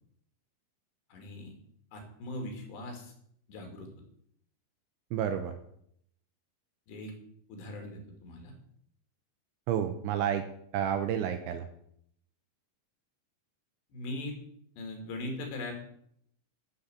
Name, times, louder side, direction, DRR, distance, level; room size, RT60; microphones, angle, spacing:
voice 1, 1.1-1.5 1.9-3.1 3.5-3.9 6.9-7.1 7.5-8.5 13.9-14.3 14.8-15.7, left 1 dB, 60° left, 3 dB, 4.3 m, -40 dB
voice 2, 5.1-5.6 9.7-10.5 10.7-11.7, right 9 dB, 80° right, 8 dB, 2.9 m, -30 dB
12.0 x 7.4 x 8.1 m, 0.70 s
omnidirectional pair, 6.0 m